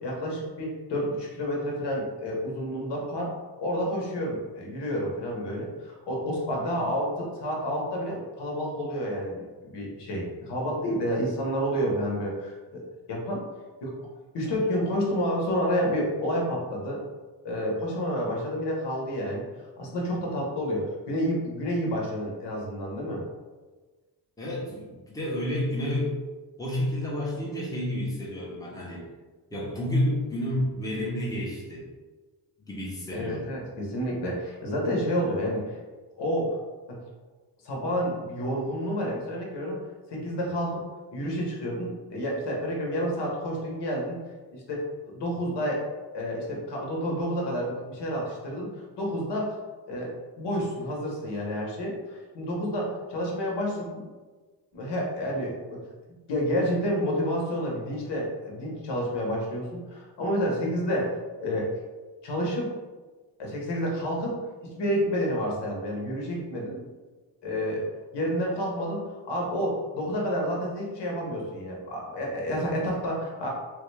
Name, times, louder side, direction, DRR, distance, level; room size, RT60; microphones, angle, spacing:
voice 1, 0.0-3.3 3.6-12.8 13.1-13.4 13.8-13.9 14.3-17.0 17.4-19.5 19.8-23.2 33.1-35.8 36.1-36.6 36.9-37.0 37.6-40.8 41.1-44.2 44.5-44.8 45.1-45.8 46.1-49.5 49.9-54.0 54.7-55.8 56.3-61.7 62.2-62.7 63.4-66.8 67.4-67.8 68.1-73.5, equal, 65° left, -2 dB, 1.1 m, -29 dB
voice 2, 24.4-26.2 26.6-29.0 29.5-31.9 32.6-33.5, left 1 dB, 10° left, -5 dB, 0.8 m, -30 dB
3.4 x 2.3 x 3.2 m, 1.3 s
cardioid pair, 135°, 44 cm